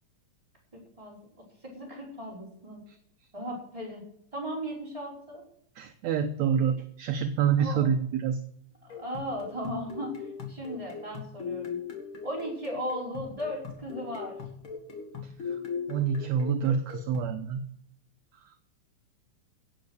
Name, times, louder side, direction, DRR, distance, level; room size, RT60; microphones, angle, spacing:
voice 1, 0.7-1.2 1.6-2.8 3.3-4.0 4.3-5.4 7.6-7.9 8.8-10.1 10.5-11.8 12.2-14.3, equal, 10° right, -3 dB, 5.4 m, -36 dB
voice 2, 5.8-8.4 15.4-15.6 15.9-17.6 18.4-18.5, right 7 dB, 70° right, 7 dB, 2.0 m, -27 dB
sound 1, 8.9-17.4, left 6 dB, 45° left, 2.6 m, -40 dB
17.0 x 7.6 x 6.5 m, 0.68 s
omnidirectional pair, 3.7 m